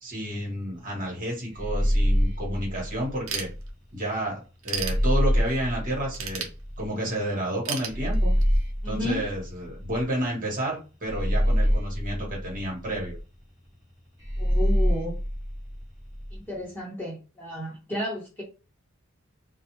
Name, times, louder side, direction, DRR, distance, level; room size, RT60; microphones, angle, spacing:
voice 1, 0.0-3.5 3.9-6.5 6.8-8.3 8.8-13.2, right 1 dB, 40° right, -3 dB, 1.2 m, -30 dB
sound 1, 1.5-3.7 4.7-6.9 7.9-10.2 11.0-13.2 14.2-16.4, equal, 15° right, 0.9 m, -26 dB
Ratchet pawl / Tools, 3.3-4.1 4.4-5.6 6.1-7.1 7.7-8.6, right 7 dB, 85° right, 0.6 m, -34 dB
voice 2, 8.8-9.3 14.4-15.1 16.3-18.4, left 1 dB, 10° left, -5 dB, 1.0 m, -32 dB
2.4 x 2.2 x 2.9 m, 0.32 s
head